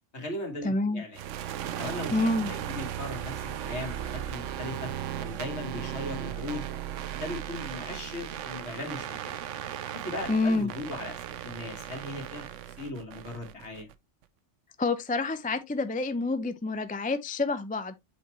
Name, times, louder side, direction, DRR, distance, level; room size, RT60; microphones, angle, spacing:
voice 1, 0.1-1.2 1.7-4.9 5.2-6.6 7.1-9.4 9.9-13.9, left 1 dB, 65° left, 2.3 m, -38 dB
voice 2, 0.6-1.0 2.1-2.5 10.3-10.7 14.8-17.9, left 2 dB, 10° left, 0.4 m, -28 dB
sound 1, 1.1-13.9, right 10 dB, 85° right, 1.0 m, -37 dB
8.2 x 4.2 x 3.0 m
omnidirectional pair, 1.2 m